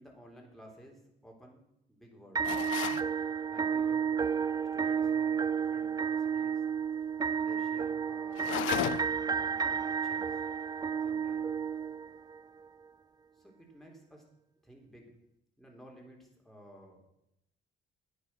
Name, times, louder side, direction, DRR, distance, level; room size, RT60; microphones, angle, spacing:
voice 1, 0.0-1.6 1.9-2.4 3.5-4.3 4.7-6.6 7.2-10.4 11.0-11.5 13.3-14.2 14.6-15.1 15.6-17.1, equal, ahead, -1 dB, 4.0 m, -54 dB
sound 1, 2.4-3.1 8.3-9.3, left 13 dB, 80° left, 0.6 m, -34 dB
sound 2, 2.4-12.4, right 7 dB, 20° right, 0.4 m, -31 dB
9.9 x 9.8 x 6.0 m, 0.81 s
cardioid pair, 90°, 20 cm